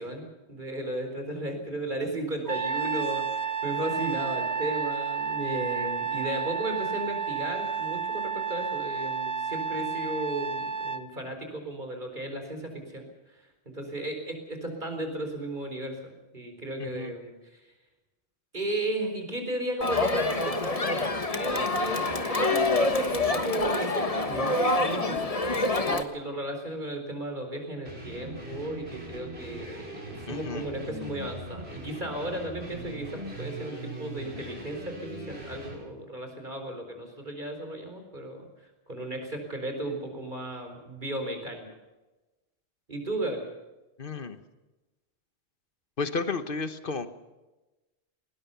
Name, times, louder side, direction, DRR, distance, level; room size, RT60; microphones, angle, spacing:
voice 1, 0.0-13.0 13.3-17.6 18.5-21.0 21.3-25.4 25.8-38.5 38.9-41.7 42.9-43.5, right 1 dB, 45° right, 5 dB, 4.5 m, -35 dB
Trumpet, 2.5-11.0, right 6 dB, 25° right, 0.5 m, -31 dB
voice 2, 16.8-17.1 30.3-30.6 44.0-44.4 46.0-47.1, left 4 dB, 55° left, 11 dB, 1.4 m, -32 dB
Crowd, 19.8-26.0, left 2 dB, 35° left, 1.4 m, -26 dB
sound 1, 27.8-35.8, right 1 dB, 70° right, 6.6 m, -41 dB
20.5 x 19.5 x 6.9 m, 1.1 s
omnidirectional pair, 1.1 m